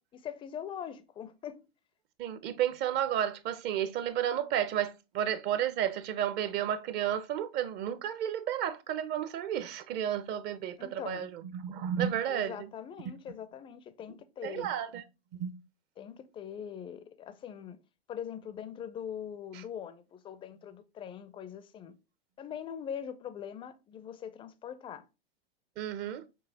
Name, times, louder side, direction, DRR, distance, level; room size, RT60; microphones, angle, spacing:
voice 1, 0.2-1.6 10.8-11.3 12.3-14.7 16.0-17.8 18.1-22.0 22.4-25.0, left 8 dB, 15° left, 0.4 m, -42 dB
voice 2, 2.2-12.7 14.4-15.0 15.3-15.5 19.5-19.6 25.8-26.2, right 10 dB, 35° right, 0.6 m, -32 dB
6.2 x 2.9 x 2.8 m
hypercardioid pair, 105°, 31 cm